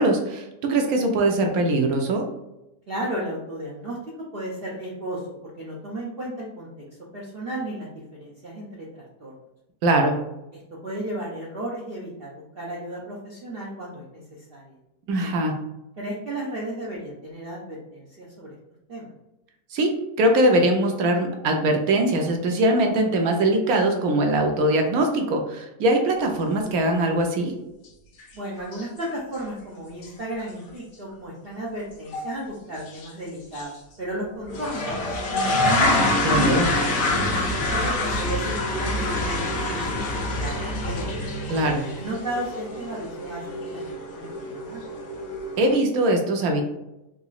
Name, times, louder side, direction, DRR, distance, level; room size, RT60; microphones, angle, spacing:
voice 1, 0.0-2.2 9.8-10.2 15.1-15.5 19.7-27.5 36.2-36.7 41.5-41.8 45.6-46.6, right 1 dB, 75° right, 3 dB, 1.1 m, -21 dB
voice 2, 2.9-4.0 4.3-6.7 7.1-9.3 10.5-14.8 16.0-18.5 18.9-19.1 28.3-35.8 36.9-41.1 41.9-44.8, right 1 dB, 55° right, -5 dB, 0.6 m, -34 dB
sound 1, 28.2-28.3 28.6-29.1 29.4-29.5 30.0-30.1 30.4-30.5 32.1-32.3 32.9-33.1 33.5-33.6 34.5-45.8, left 1 dB, 60° left, 0.8 m, -26 dB
3.8 x 2.9 x 2.4 m, 0.92 s
omnidirectional pair, 1.6 m